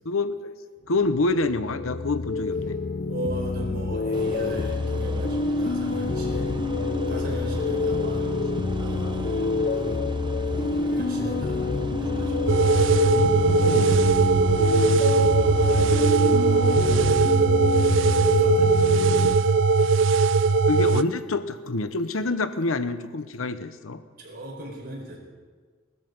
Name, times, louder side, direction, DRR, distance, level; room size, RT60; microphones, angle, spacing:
voice 1, 0.0-0.5 0.9-2.8 7.3-7.4 8.8-9.2 13.1-13.9 20.7-24.0, left 3 dB, 85° left, 11 dB, 0.9 m, -27 dB
sound 1, 1.0-19.4, left 4 dB, 45° left, 0.5 m, -27 dB
voice 2, 3.0-6.6 7.1-8.3 8.7-10.0 10.5-11.6 12.0-12.7 13.4-14.3 15.6-19.5 19.8-20.0 24.2-25.2, right 1 dB, 45° right, -1 dB, 4.6 m, -39 dB
sound 2, 4.1-17.1, right 1 dB, 25° right, 0.8 m, -34 dB
sound 3, 12.5-21.0, right 4 dB, 65° right, 0.5 m, -20 dB
19.0 x 13.5 x 5.4 m, 1.5 s
head